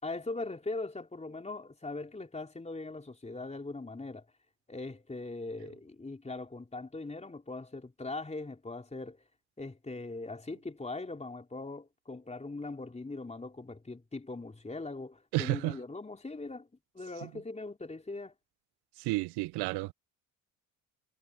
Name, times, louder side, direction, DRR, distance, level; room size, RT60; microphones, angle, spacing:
voice 1, 0.0-4.3 4.7-9.2 9.6-16.7 16.9-18.3, left 3 dB, 15° left, 4.0 m, -40 dB
voice 2, 15.3-15.8 19.0-19.9, right 22 dB, 70° right, 0.7 m, -31 dB
hypercardioid pair, 65°, 40 cm